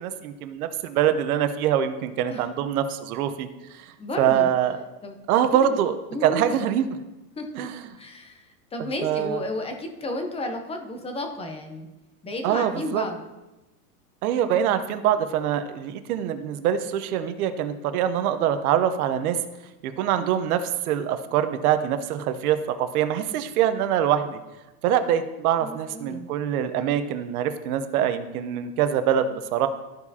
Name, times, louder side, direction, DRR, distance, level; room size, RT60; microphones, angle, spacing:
voice 1, 0.0-4.8 5.3-6.0 6.2-6.8 7.5-7.9 9.0-9.4 12.4-13.0 14.2-19.4 19.8-24.4 24.8-29.7, right 10 dB, 65° right, 10 dB, 0.9 m, -24 dB
voice 2, 4.0-4.5 5.0-5.2 5.5-5.8 6.1-6.6 7.4-7.7 8.0-11.9 12.2-13.2 25.6-26.3, left 1 dB, 10° left, 4 dB, 0.7 m, -33 dB
13.5 x 4.7 x 2.8 m, 1.0 s
supercardioid pair, 130°, 47 cm